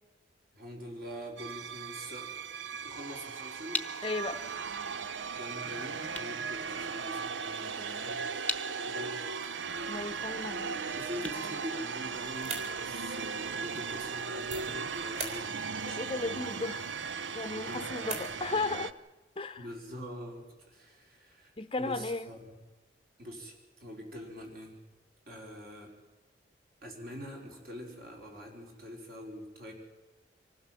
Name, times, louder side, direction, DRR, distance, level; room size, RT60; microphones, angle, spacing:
voice 1, 0.5-2.3 2.8-4.1 5.3-8.2 8.8-9.2 10.9-15.5 15.9-16.0 16.3-16.8 17.6-18.4 19.6-21.5 21.8-22.5 23.2-23.5 23.8-24.7 25.3-25.9 26.8-29.7, equal, 55° right, 0 dB, 5.0 m, -44 dB
sound 1, 1.4-18.9, right 5 dB, 85° right, 0.8 m, -37 dB
sound 2, 3.7-12.5, left 3 dB, 10° left, 1.0 m, -43 dB
voice 2, 4.0-4.4 7.6-8.1 9.9-10.9 11.4-11.5 15.8-16.9 17.3-18.9 19.4-19.6 21.6-22.3, left 3 dB, 30° left, 10 dB, 0.8 m, -35 dB
sound 3, 12.1-18.8, right 3 dB, 35° right, 4.1 m, -46 dB
25.5 x 15.5 x 7.7 m, 1.2 s
head